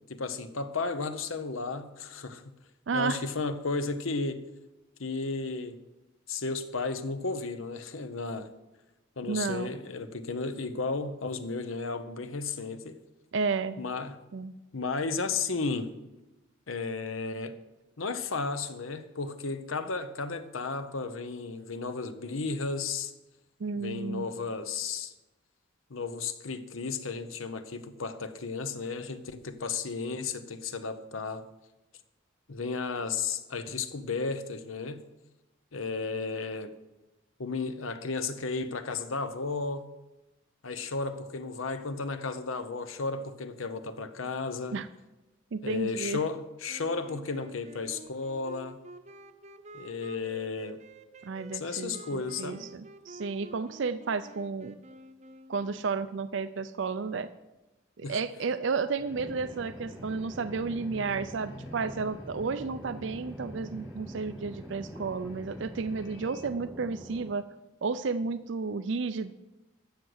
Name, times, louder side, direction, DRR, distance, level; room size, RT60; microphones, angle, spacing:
voice 1, 0.1-2.4 2.9-4.4 5.0-5.8 6.3-8.5 9.2-13.0 13.8-14.2 14.7-16.0 16.7-17.6 18.0-23.1 23.8-25.1 25.9-31.4 32.5-35.0 35.7-36.8 37.4-39.9 40.6-44.8 45.6-48.8 49.7-50.8 51.5-52.6 58.0-58.2, left 4 dB, 80° left, 0.9 m, -34 dB
voice 2, 2.9-3.2 9.3-9.7 13.3-13.8 14.3-14.5 23.6-24.3 44.7-44.9 45.5-46.2 51.2-54.7 55.5-57.3 58.0-67.5 67.8-69.3, right 4 dB, 65° right, 0.5 m, -32 dB
sound 1, 46.7-55.9, right 2 dB, 35° right, 0.8 m, -50 dB
sound 2, 59.0-66.4, left 1 dB, 60° left, 3.0 m, -48 dB
sound 3, 59.1-67.3, equal, 5° right, 0.5 m, -45 dB
13.0 x 6.6 x 7.9 m
head